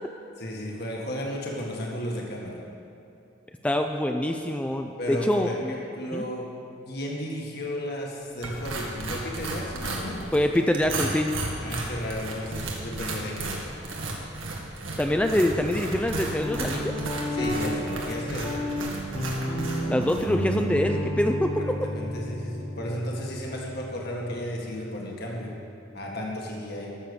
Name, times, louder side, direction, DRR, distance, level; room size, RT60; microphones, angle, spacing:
voice 1, 0.4-2.6 5.0-6.5 6.9-10.2 11.6-13.6 17.3-18.7 21.6-25.6 25.9-27.0, equal, 55° left, -1 dB, 1.7 m, -34 dB
voice 2, 3.6-5.7 6.1-6.2 10.3-11.3 15.0-17.0 19.9-21.9, left 1 dB, 5° left, 5 dB, 0.4 m, -25 dB
sound 1, 8.4-20.3, right 2 dB, 90° right, 1.7 m, -34 dB
Guitar, 16.4-25.9, equal, 25° left, 1.6 m, -32 dB
13.0 x 6.5 x 7.0 m, 2.6 s
head